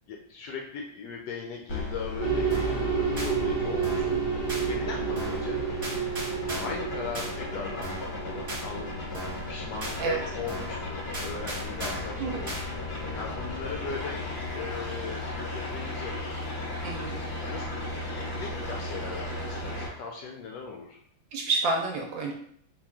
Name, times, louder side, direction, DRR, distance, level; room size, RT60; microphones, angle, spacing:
voice 1, 0.1-5.6 6.6-7.9 8.2-16.2 17.4-21.0, left 5 dB, 75° left, 1 dB, 0.9 m, -39 dB
sound 1, 1.7-19.9, left 2 dB, 45° left, 0.7 m, -36 dB
sound 2, 2.2-9.3, right 6 dB, 45° right, 0.6 m, -30 dB
sound 3, 2.5-2.8 3.2-3.3 3.8-4.1 4.5-4.6 5.1-5.5 5.8-6.8 7.1-7.3 7.8-8.1 8.5-8.6 9.1-9.5 9.8-10.0 10.5-10.8 11.1-12.1 12.5-12.6, right 1 dB, 25° right, 1.2 m, -36 dB
voice 2, 16.8-17.2 21.3-22.3, right 3 dB, 70° right, 1 dB, 1.2 m, -29 dB
4.0 x 2.3 x 3.5 m, 0.66 s
omnidirectional pair, 2.3 m